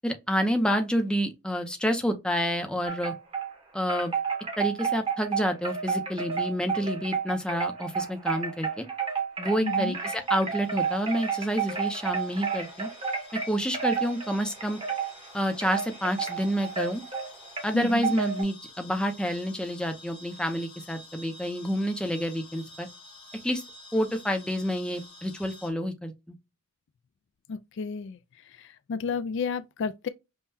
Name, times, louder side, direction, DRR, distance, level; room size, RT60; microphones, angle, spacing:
voice 1, 0.0-3.1 3.7-4.2 4.6-8.8 9.4-12.9 13.5-14.8 15.3-17.0 17.6-22.9 23.4-23.6 23.9-26.3, equal, 5° left, 0.6 m, -28 dB
Wind chime, 2.9-3.5 3.9-18.4, right 6 dB, 25° right, 1.0 m, -31 dB
sound 1, 9.4-25.7, left 2 dB, 30° left, 0.9 m, -50 dB
voice 2, 9.6-10.0 17.7-18.1 27.5-28.2 28.5-30.1, left 5 dB, 60° left, 0.3 m, -32 dB
5.4 x 2.2 x 2.6 m
head